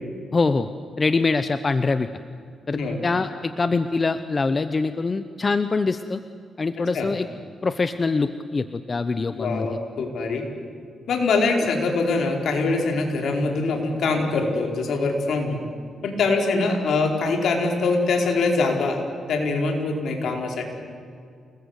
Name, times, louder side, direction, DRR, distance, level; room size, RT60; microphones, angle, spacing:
voice 1, 0.3-0.7 1.0-2.1 2.7-6.2 6.6-7.3 7.6-9.7, left 4 dB, 35° left, 11 dB, 0.9 m, -24 dB
voice 2, 6.8-7.1 9.3-10.4 11.1-15.6 16.0-19.0 19.3-20.6, left 3 dB, 70° left, 2 dB, 4.8 m, -23 dB
28.5 x 20.0 x 8.2 m, 2.2 s
cardioid pair, 95°, 0 cm